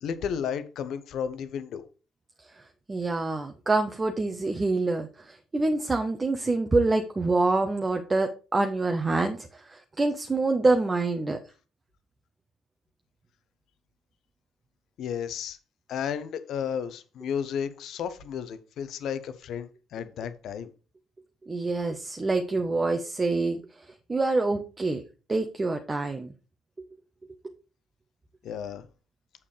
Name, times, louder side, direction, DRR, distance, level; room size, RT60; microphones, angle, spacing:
voice 1, 0.0-1.8 15.0-15.6 15.9-20.7 28.4-28.9, left 8 dB, 55° left, 0.9 m, -33 dB
voice 2, 2.9-11.4 21.5-23.6 24.1-25.0 25.3-26.3, right 3 dB, 25° right, 1.0 m, -26 dB
8.4 x 7.4 x 3.3 m
figure-of-eight pair, 50°, 0 cm